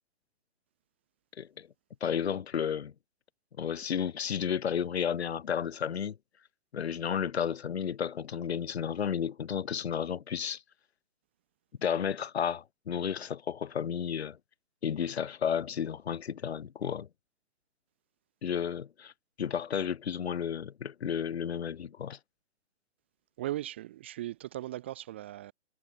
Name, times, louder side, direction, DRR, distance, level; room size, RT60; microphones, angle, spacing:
voice 1, 2.0-2.9 3.6-6.2 6.7-10.6 11.8-14.4 14.8-17.1 18.4-19.1 19.4-22.2, left 8 dB, 65° left, 2.6 m, -32 dB
voice 2, 23.4-25.5, right 15 dB, 10° right, 0.6 m, -38 dB
hypercardioid pair, 170°, 35 cm